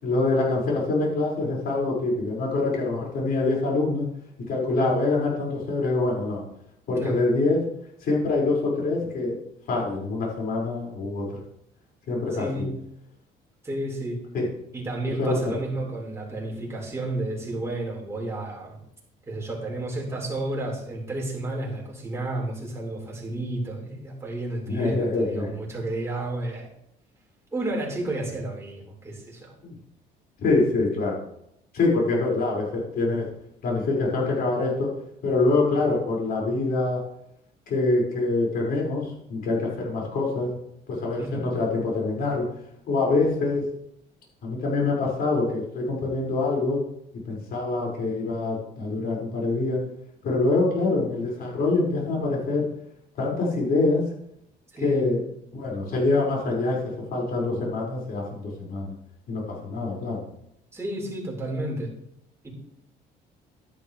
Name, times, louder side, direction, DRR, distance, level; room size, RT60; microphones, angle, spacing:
voice 1, 0.0-4.1 4.5-6.4 6.9-7.6 8.0-9.4 9.7-11.3 12.1-12.7 14.3-14.5 15.0-15.5 24.7-25.5 29.6-29.7 30.4-31.2 31.7-33.3 33.6-34.9 35.2-37.0 37.7-40.5 40.9-42.4 42.9-43.7 44.4-46.8 47.2-49.8 50.2-52.6 53.2-54.0 54.8-55.2 55.5-58.9 59.3-60.2, left 3 dB, 60° left, -3 dB, 5.3 m, -25 dB
voice 2, 12.3-12.7 13.6-14.2 14.7-18.8 19.3-26.7 27.5-29.5 41.2-41.5 54.7-55.1 60.7-61.9 62.4-62.5, right 2 dB, 15° right, -3 dB, 4.4 m, -31 dB
12.0 x 11.0 x 3.3 m, 0.76 s
cardioid pair, 110°, 17 cm